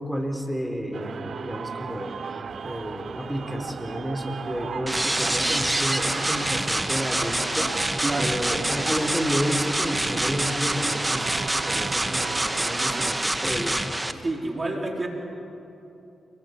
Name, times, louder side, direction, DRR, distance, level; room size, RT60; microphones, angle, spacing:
voice 1, 0.0-7.7 8.2-13.8, equal, ahead, 3 dB, 4.1 m, -31 dB
sound 1, 0.9-13.3, right 6 dB, 60° right, 0.7 m, -37 dB
sound 2, 4.9-14.1, right 1 dB, 15° right, 1.8 m, -26 dB
voice 2, 8.0-8.4 14.2-15.1, right 2 dB, 35° right, 1 dB, 4.0 m, -28 dB
28.5 x 20.5 x 8.4 m, 2.9 s
supercardioid pair, 45°, 0 cm